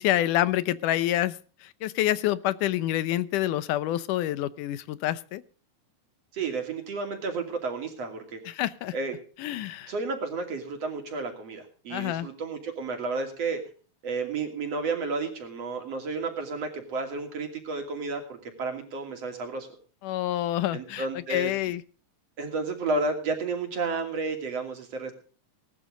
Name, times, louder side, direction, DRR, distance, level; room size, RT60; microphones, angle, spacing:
voice 1, 0.0-5.4 8.5-8.9 9.4-9.9 11.9-12.3 20.0-21.8, left 14 dB, 80° left, 16 dB, 2.3 m, -27 dB
voice 2, 6.3-8.4 8.9-9.1 9.9-13.6 14.0-19.7 20.7-21.5 22.4-25.1, right 3 dB, 50° right, 5 dB, 3.6 m, -32 dB
19.0 x 12.5 x 3.9 m, 0.39 s
omnidirectional pair, 3.7 m